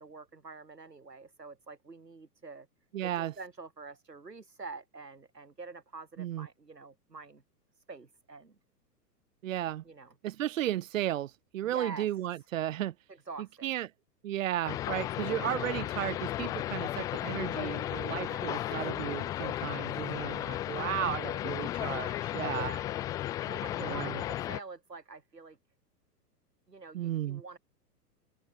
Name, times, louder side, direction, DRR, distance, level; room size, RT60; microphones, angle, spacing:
voice 1, 0.0-2.7 3.0-7.4 7.9-8.6 9.8-10.1 11.6-12.1 13.1-13.7 18.0-18.5 19.6-19.9 22.5-22.9 23.4-25.6 26.7-27.6, right 4 dB, 80° right, 7.5 m, -46 dB
voice 2, 2.9-3.3 6.2-6.5 9.4-9.8 10.2-12.9 13.6-13.9 14.2-22.7 23.8-24.2 26.9-27.4, right 12 dB, 50° right, 1.4 m, -34 dB
sound 1, 14.7-24.6, left 13 dB, 10° left, 0.4 m, -34 dB
open air
figure-of-eight pair, 105°, 48 cm